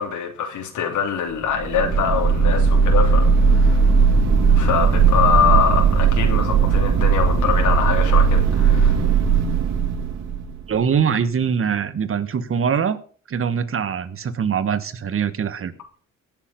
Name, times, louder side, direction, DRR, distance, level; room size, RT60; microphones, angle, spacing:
voice 1, 0.0-3.9 4.5-9.0, left 7 dB, 80° left, 3.2 m, -23 dB
sound 1, 1.5-10.8, right 5 dB, 65° right, 2.9 m, -17 dB
voice 2, 10.7-13.0 13.3-15.7, right 7 dB, 45° right, 1.6 m, -23 dB
17.0 x 7.2 x 5.8 m
cardioid pair, 90°, 30 cm